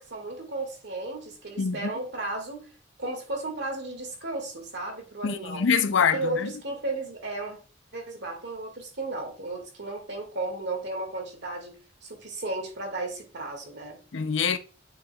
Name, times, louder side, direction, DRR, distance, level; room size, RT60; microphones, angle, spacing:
voice 1, 0.0-2.7 3.0-5.7 6.0-7.6 7.9-14.0, right 2 dB, 65° right, 2.0 m, -34 dB
voice 2, 1.6-1.9 5.2-6.5 14.1-14.6, left 6 dB, 80° left, 0.6 m, -25 dB
8.8 x 4.8 x 2.3 m
head